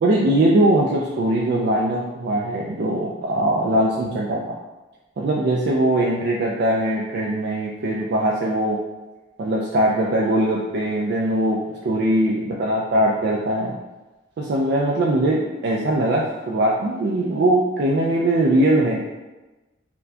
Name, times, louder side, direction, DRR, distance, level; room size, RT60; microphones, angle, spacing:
voice 1, 0.0-4.5 5.2-8.8 9.4-13.8 14.4-19.0, right 1 dB, 55° right, -3 dB, 0.3 m, -21 dB
4.2 x 2.2 x 2.7 m, 1.1 s
head